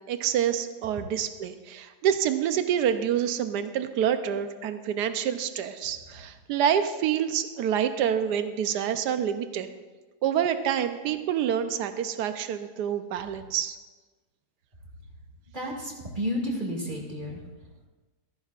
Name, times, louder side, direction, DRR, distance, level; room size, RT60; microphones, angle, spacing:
voice 1, 0.0-9.7 10.2-13.8, right 9 dB, 90° right, 9 dB, 1.2 m, -27 dB
voice 2, 15.5-17.4, equal, 30° right, -3 dB, 2.3 m, -31 dB
14.5 x 14.5 x 2.4 m, 1.3 s
omnidirectional pair, 1.7 m